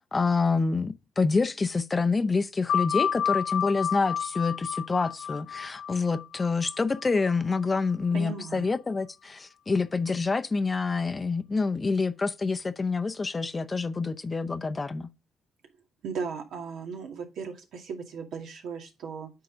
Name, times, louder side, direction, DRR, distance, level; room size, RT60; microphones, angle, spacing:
voice 1, 0.1-15.1, left 4 dB, 25° left, 0.6 m, -27 dB
sound 1, 2.7-7.9, left 8 dB, 75° left, 0.5 m, -31 dB
voice 2, 8.1-8.7 16.0-19.3, right 5 dB, 75° right, 2.3 m, -36 dB
9.5 x 3.8 x 5.1 m
cardioid pair, 90°, 0 cm